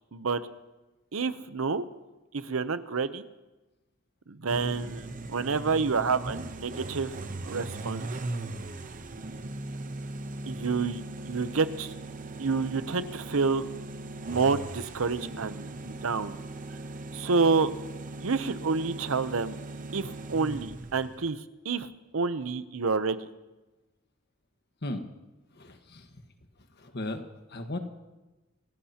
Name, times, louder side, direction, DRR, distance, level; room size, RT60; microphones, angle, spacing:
voice 1, 0.1-0.4 1.1-1.9 2.3-3.2 4.3-7.1 7.4-8.1 10.5-11.9 12.4-13.7 14.3-16.4 17.1-17.7 18.2-19.6 19.9-21.4 21.6-21.9 22.1-23.2, right 4 dB, 80° right, 13 dB, 0.7 m, -28 dB
sound 1, 4.5-21.3, right 2 dB, 40° right, 0.8 m, -39 dB
voice 2, 25.5-26.0 26.8-27.2 27.5-27.8, left 1 dB, 55° left, 6 dB, 1.5 m, -35 dB
26.5 x 17.0 x 2.9 m, 1.1 s
head